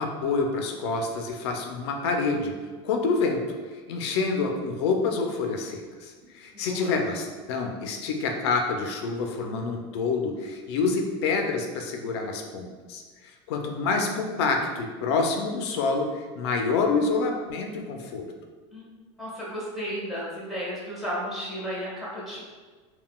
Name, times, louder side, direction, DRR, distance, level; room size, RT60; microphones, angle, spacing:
voice 1, 0.0-2.5 2.8-3.4 3.7-18.3, left 4 dB, 85° left, 3 dB, 0.4 m, -27 dB
voice 2, 6.5-6.9 18.7-18.9 19.2-22.4, equal, ahead, -6 dB, 1.0 m, -33 dB
3.7 x 2.2 x 2.2 m, 1.4 s
supercardioid pair, 130°, 13 cm